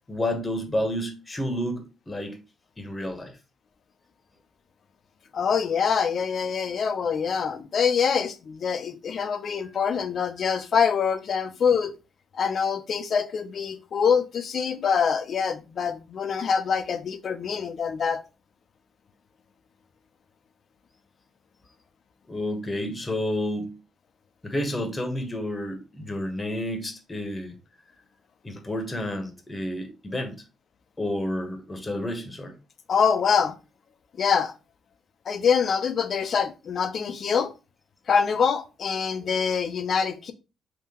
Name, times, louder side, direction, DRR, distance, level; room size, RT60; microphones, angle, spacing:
voice 1, 0.1-2.4 2.8-3.3 22.3-23.8 24.4-27.5 28.4-30.4 31.0-32.5, left 1 dB, 20° left, 1.0 m, -30 dB
voice 2, 5.3-11.9 12.3-18.2 32.9-33.6 34.2-34.5 35.3-37.5 38.1-40.3, left 6 dB, 55° left, 0.5 m, -25 dB
3.7 x 2.8 x 2.8 m
cardioid pair, 90°, 0 cm